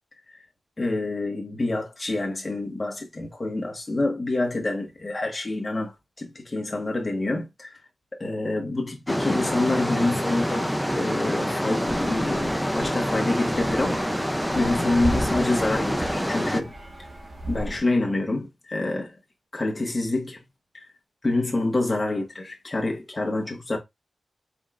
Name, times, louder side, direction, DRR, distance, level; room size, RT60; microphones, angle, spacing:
voice 1, 0.8-7.7 8.2-14.0 14.5-16.7 17.5-19.2 19.5-20.4 20.7-20.8 21.2-23.8, left 2 dB, 25° left, 1.5 m, -27 dB
sound 1, 9.1-16.6, equal, ahead, 0.5 m, -26 dB
sound 2, 11.9-17.8, right 1 dB, 45° right, 1.4 m, -36 dB
5.1 x 3.7 x 2.5 m
wide cardioid pair, 115°, 0 cm